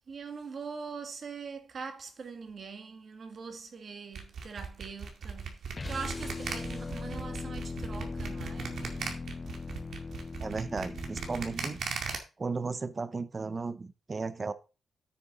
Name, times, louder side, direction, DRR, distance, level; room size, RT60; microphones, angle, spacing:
voice 1, 0.1-9.1, right 5 dB, 45° right, 1.6 m, -42 dB
sound 1, 4.1-12.2, right 6 dB, 70° right, 2.2 m, -38 dB
sound 2, 5.7-11.9, left 4 dB, 25° left, 0.5 m, -39 dB
voice 2, 10.4-11.8 12.4-14.5, right 4 dB, 30° right, 0.8 m, -35 dB
8.9 x 6.8 x 3.9 m
wide cardioid pair, 135°, 0 cm